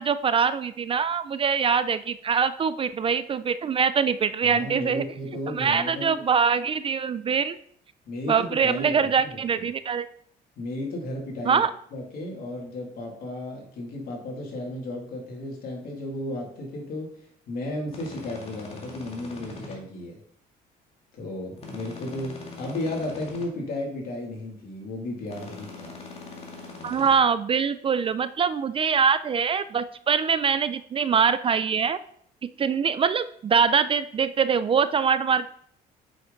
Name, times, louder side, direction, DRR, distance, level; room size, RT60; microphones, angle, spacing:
voice 1, 0.0-5.0 5.5-7.6 8.3-10.1 11.5-11.7 26.8-32.0 32.6-35.5, right 6 dB, 30° right, 14 dB, 0.4 m, -23 dB
voice 2, 4.5-6.1 8.1-9.0 9.6-9.7 10.6-11.6 11.9-17.1 17.5-20.2 21.1-26.0, left 1 dB, 60° left, 0 dB, 2.6 m, -34 dB
sound 1, 17.9-19.8 21.6-23.5 25.3-27.2, left 3 dB, 35° left, 2.2 m, -42 dB
7.9 x 5.8 x 3.9 m, 0.64 s
cardioid pair, 110°, 17 cm